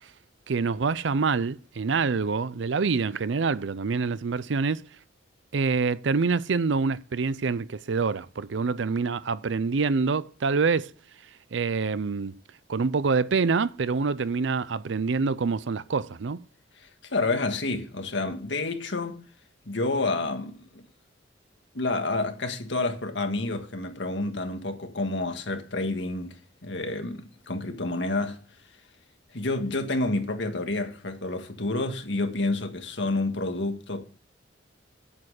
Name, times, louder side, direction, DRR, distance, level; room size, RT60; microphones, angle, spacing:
voice 1, 0.5-4.8 5.5-10.9 11.5-12.3 12.7-16.4, right 4 dB, 75° right, 0.5 m, -26 dB
voice 2, 16.8-19.3 19.7-20.8 21.7-26.4 26.6-28.4 29.3-34.0, left 2 dB, 75° left, 1.8 m, -29 dB
8.7 x 8.7 x 6.5 m
head